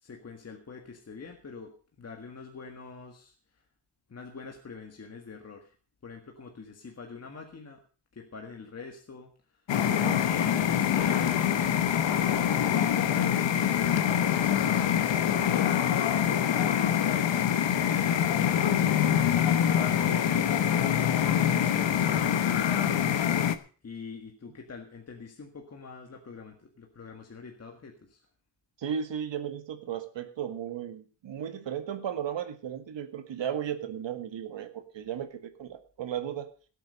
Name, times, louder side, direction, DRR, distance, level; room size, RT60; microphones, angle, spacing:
voice 1, 0.0-3.6 4.1-5.7 6.0-7.8 8.1-11.4 12.1-15.6 16.3-16.7 17.5-19.1 19.6-23.2 23.8-28.3, left 5 dB, 35° left, 2 dB, 1.8 m, -45 dB
sound 1, 9.7-23.5, left 9 dB, 75° left, 1.2 m, -25 dB
voice 2, 9.9-10.2 28.8-36.5, right 9 dB, 75° right, 8 dB, 1.9 m, -35 dB
18.0 x 8.2 x 5.4 m, 0.38 s
wide cardioid pair, 170°, 44 cm